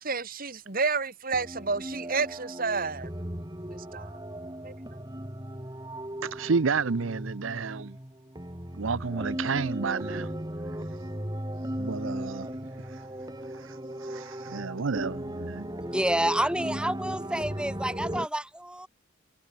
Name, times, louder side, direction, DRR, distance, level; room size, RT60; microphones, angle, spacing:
voice 1, 0.0-3.1 3.9-4.2 4.6-4.7, right 4 dB, 45° right, 3.3 m, -30 dB
sound 1, 1.3-18.3, right 1 dB, 20° right, 3.7 m, -37 dB
voice 2, 6.2-8.0 8.7-10.3 11.8-12.5 12.9-13.0 13.5-15.7, right 5 dB, 75° right, 0.7 m, -31 dB
voice 3, 15.8-18.9, right 1 dB, 5° right, 3.4 m, -29 dB
head